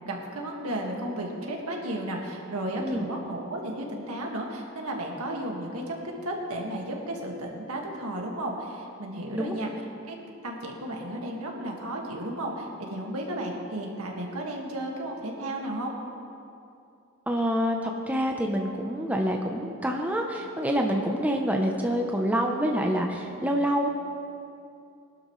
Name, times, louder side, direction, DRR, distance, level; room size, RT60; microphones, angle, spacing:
voice 1, 0.0-6.0 6.2-10.2 10.4-15.9, right 1 dB, 85° right, 0 dB, 1.9 m, -33 dB
voice 2, 17.3-23.9, equal, 5° right, 1 dB, 0.7 m, -27 dB
19.5 x 12.0 x 3.2 m, 2.6 s
head